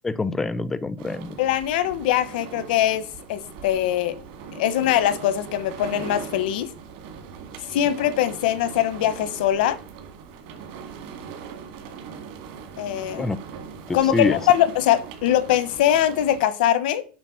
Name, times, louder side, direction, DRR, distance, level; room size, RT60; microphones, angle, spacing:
voice 1, 0.0-1.4 13.1-13.4 13.9-14.4, left 3 dB, 5° left, 0.3 m, -26 dB
sound 1, 1.0-16.4, right 6 dB, 65° right, 2.0 m, -40 dB
voice 2, 1.4-3.0 3.3-4.2 4.5-6.7 7.7-9.8 12.8-13.3 13.9-17.0, left 11 dB, 90° left, 1.0 m, -22 dB
7.5 x 4.8 x 6.3 m
cardioid pair, 170°, 5 cm